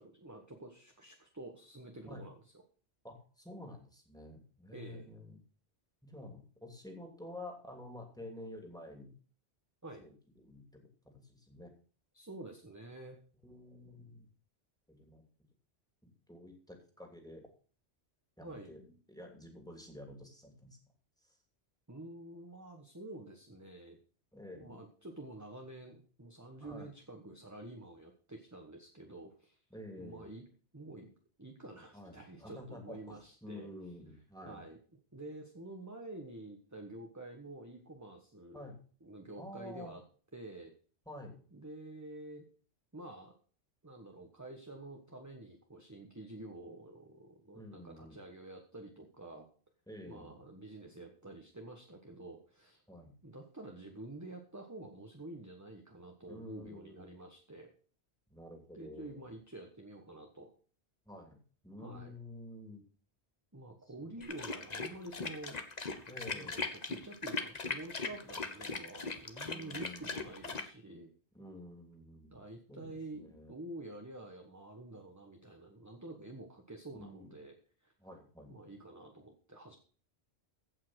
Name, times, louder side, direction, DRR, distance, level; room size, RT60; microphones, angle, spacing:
voice 1, 0.0-2.4 4.7-5.1 9.8-10.0 12.1-13.2 18.4-18.7 21.9-24.0 24.5-29.6 30.0-30.4 30.7-31.1 31.4-33.7 34.4-38.7 39.0-40.0 40.3-40.7 41.5-42.5 42.9-43.3 43.8-49.5 50.0-52.8 53.2-57.7 58.7-60.5 61.8-62.1 63.5-65.6 66.3-71.1 72.3-77.9 78.5-79.8, right 2 dB, 15° right, 3 dB, 1.4 m, -49 dB
voice 2, 3.0-5.4 6.0-9.1 10.0-11.7 13.4-14.3 14.9-15.2 16.0-17.5 18.4-20.8 21.2-21.4 24.3-24.8 26.6-26.9 29.7-30.3 31.9-34.6 38.5-38.8 39.4-40.0 41.1-41.4 47.5-48.2 49.9-50.4 52.9-53.2 56.3-57.2 58.3-59.2 61.1-62.8 63.9-64.1 66.1-66.6 69.5-70.2 71.3-72.4 72.7-73.5 76.9-77.3 78.0-78.6, left 1 dB, 5° left, 2 dB, 2.8 m, -50 dB
sound 1, 64.2-70.7, left 4 dB, 40° left, 1.2 m, -39 dB
15.5 x 5.8 x 6.4 m, 0.42 s
omnidirectional pair, 1.1 m